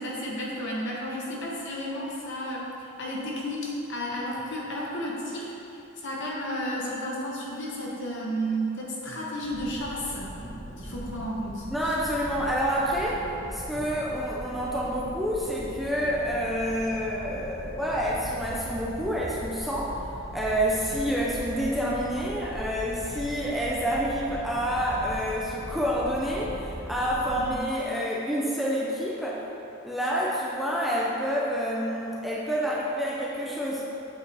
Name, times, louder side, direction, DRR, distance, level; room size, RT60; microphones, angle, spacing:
voice 1, 0.0-2.6 3.0-5.5 6.0-10.3 10.8-11.6 27.4-27.6, equal, 55° left, -4 dB, 1.3 m, -32 dB
sound 1, 9.4-27.6, equal, 35° left, 1.4 m, -40 dB
voice 2, 11.7-13.2 13.5-20.0 20.3-29.4 29.8-33.9, equal, ahead, -6 dB, 0.6 m, -28 dB
8.0 x 5.6 x 3.5 m, 2.9 s
head